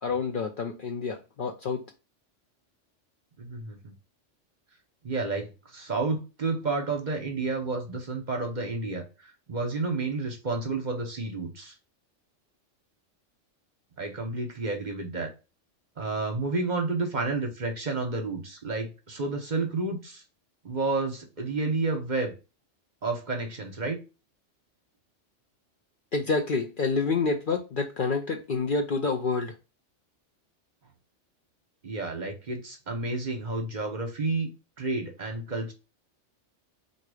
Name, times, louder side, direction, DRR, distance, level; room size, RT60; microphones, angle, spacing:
voice 1, 0.0-1.8 26.1-29.5, left 4 dB, 55° left, 0.6 m, -28 dB
voice 2, 3.4-3.9 5.0-11.7 14.0-15.3 16.0-20.2 20.6-22.3 23.0-24.0 31.8-34.5 34.8-35.7, right 3 dB, 40° right, 0.9 m, -30 dB
3.8 x 2.8 x 4.8 m
omnidirectional pair, 1.3 m